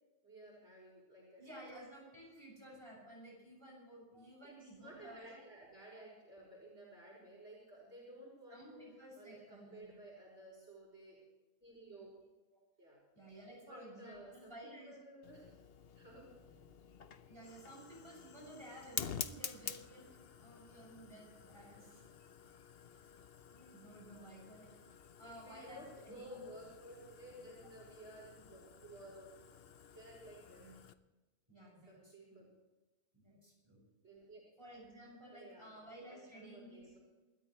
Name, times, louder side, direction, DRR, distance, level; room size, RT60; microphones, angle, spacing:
voice 1, 0.2-1.4 4.4-8.8 9.2-11.2 11.6-12.1 12.8-13.0 13.6-15.7 15.9-16.3 25.2-29.3 29.9-30.6 31.9-32.4 34.0-34.4 35.3-35.8 36.1-37.0, right 1 dB, 85° right, -5 dB, 6.3 m, -55 dB
voice 2, 1.4-5.4 8.5-9.9 13.1-15.0 17.3-20.1 20.4-22.1 22.8-23.0 23.5-24.8 25.2-26.4 30.5-30.8 31.5-32.5 33.1-33.8 34.6-36.9, right 1 dB, 25° right, -3 dB, 7.3 m, -54 dB
Fire, 15.2-30.9, left 7 dB, 60° left, 1.0 m, -50 dB
29.0 x 13.5 x 3.3 m, 1.2 s
omnidirectional pair, 1.2 m